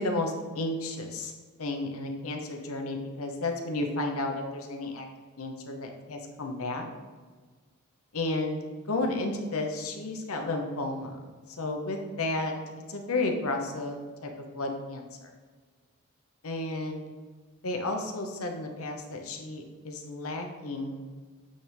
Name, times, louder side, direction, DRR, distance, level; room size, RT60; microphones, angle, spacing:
voice 1, 0.0-1.3 1.6-5.1 5.4-6.9 8.1-8.6 8.9-11.2 11.6-12.5 12.9-15.3 16.4-17.0 17.6-21.1, left 2 dB, 70° left, 3 dB, 0.9 m, -32 dB
8.9 x 3.5 x 3.4 m, 1.4 s
head